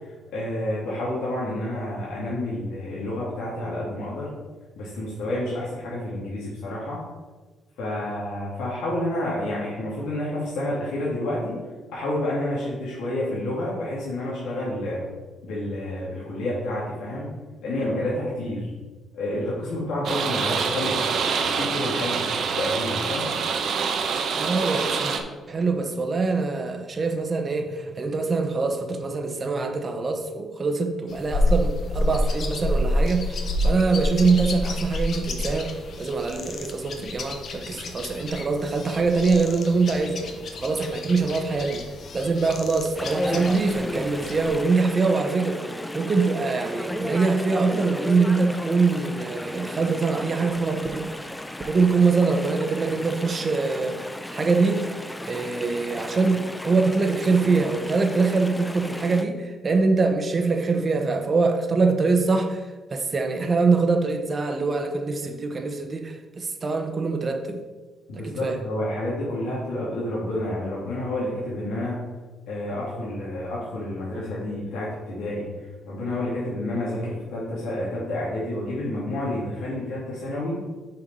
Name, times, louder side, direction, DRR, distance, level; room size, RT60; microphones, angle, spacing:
voice 1, 0.3-4.3 4.8-7.0 7.8-11.6 11.9-15.0 15.4-17.3 17.6-18.7 19.1-21.0 21.4-22.3 22.6-23.3 68.1-72.0 72.5-75.5 75.9-80.6, left 1 dB, 85° left, -7 dB, 2.0 m, -29 dB
sound 1, 20.0-25.2, right 5 dB, 65° right, 0.8 m, -26 dB
voice 2, 24.4-25.1 25.5-41.8 42.1-45.6 45.9-51.3 51.7-54.0 54.3-54.9 55.2-62.6 62.9-67.6 68.2-68.6, right 4 dB, 35° right, 5 dB, 1.0 m, -24 dB
sound 2, 31.1-44.6, left 1 dB, 60° left, 1.0 m, -29 dB
Chatter / Stream, 42.9-59.2, left 1 dB, 10° left, 0.5 m, -34 dB
6.8 x 4.6 x 5.3 m, 1.3 s
cardioid pair, 90°, 0 cm